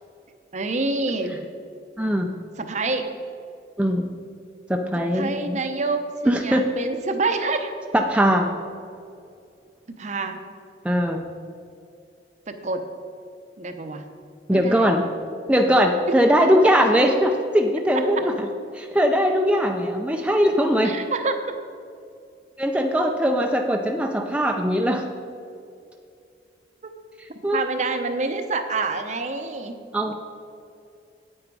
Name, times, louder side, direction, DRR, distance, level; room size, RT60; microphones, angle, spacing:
voice 1, 0.5-1.4 2.6-3.1 5.1-7.7 9.9-10.4 12.5-12.8 13.6-14.0 14.5-14.9 18.2-18.3 20.8-21.4 27.5-29.8 30.1-30.2, right 3 dB, 40° right, 7 dB, 0.7 m, -27 dB
voice 2, 2.0-2.3 3.8-4.1 4.7-5.6 6.3-6.6 7.9-8.6 10.8-11.2 14.5-15.0 15.5-18.5 18.7-21.0 22.6-25.0 27.4-27.6 29.9-30.1, equal, 5° right, 3 dB, 0.5 m, -20 dB
8.8 x 8.7 x 4.7 m, 2.4 s
head